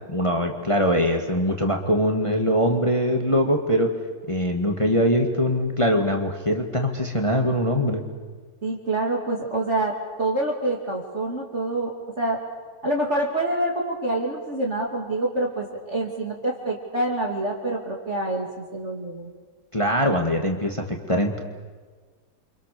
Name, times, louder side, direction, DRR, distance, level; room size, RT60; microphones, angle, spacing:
voice 1, 0.1-3.9 4.2-8.0 19.7-21.4, equal, 15° left, 3 dB, 2.0 m, -22 dB
voice 2, 8.6-12.4 12.8-19.3, right 2 dB, 35° right, -1 dB, 3.0 m, -26 dB
29.5 x 26.0 x 6.9 m, 1.4 s
omnidirectional pair, 2.2 m